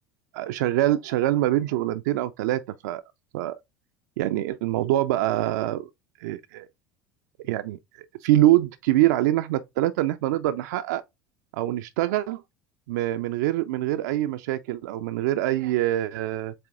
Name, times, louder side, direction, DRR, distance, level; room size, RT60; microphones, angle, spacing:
voice 1, 0.3-3.0 3.3-3.6 4.2-5.9 6.2-6.7 7.5-11.0 11.5-12.4 12.9-16.5, right 14 dB, 65° right, 0.4 m, -24 dB
7.7 x 2.8 x 2.4 m
figure-of-eight pair, 70°, 10 cm